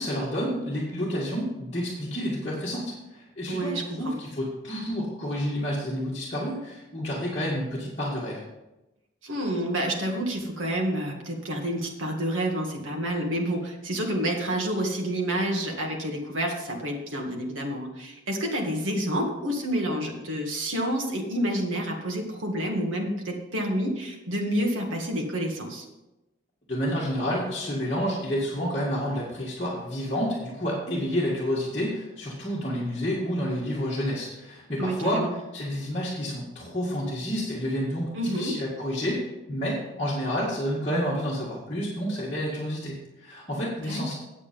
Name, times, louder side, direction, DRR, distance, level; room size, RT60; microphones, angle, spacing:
voice 1, 0.0-8.4 26.7-35.3 35.5-44.1, equal, 30° left, -8 dB, 1.9 m, -29 dB
voice 2, 3.5-4.2 9.2-25.9 34.8-35.3 38.1-38.5 43.9-44.1, right 1 dB, 85° right, 1 dB, 1.9 m, -29 dB
8.7 x 8.3 x 5.2 m, 0.98 s
head